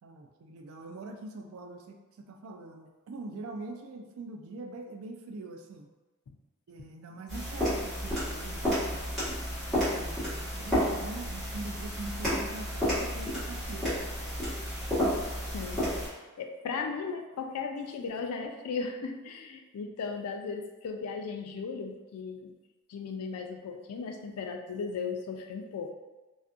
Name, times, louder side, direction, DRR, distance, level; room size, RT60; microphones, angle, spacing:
voice 1, 0.0-5.9 6.7-9.3 9.9-13.9, right 3 dB, 65° right, 3 dB, 0.3 m, -43 dB
sound 1, 7.3-16.1, equal, ahead, 1.2 m, -31 dB
voice 2, 15.5-22.5 22.9-25.9, left 5 dB, 85° left, 4 dB, 0.3 m, -36 dB
2.5 x 2.4 x 2.4 m, 1.2 s
head